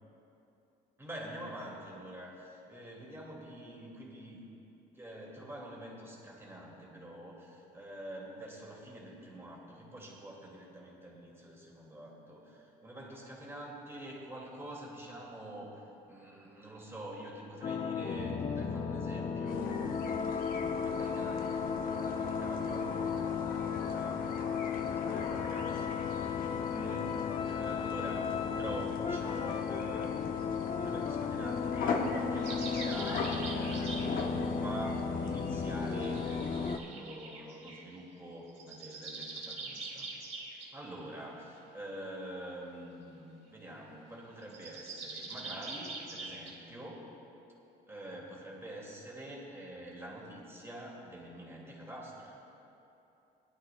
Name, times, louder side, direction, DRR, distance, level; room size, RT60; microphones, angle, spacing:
voice 1, 1.0-4.4 4.9-15.8 16.1-24.2 24.9-40.1 40.7-43.3 43.5-47.1 47.9-52.4, right 1 dB, 15° right, -3 dB, 2.2 m, -46 dB
sound 1, 17.6-36.8, left 6 dB, 35° left, 0.5 m, -35 dB
sound 2, 19.5-36.8, left 4 dB, 60° left, 1.0 m, -41 dB
sound 3, 32.4-34.3 35.9-37.9 38.5-40.7 44.4-46.6, right 3 dB, 35° right, 2.2 m, -44 dB
18.5 x 11.0 x 2.2 m, 2.9 s
cardioid pair, 110°, 17 cm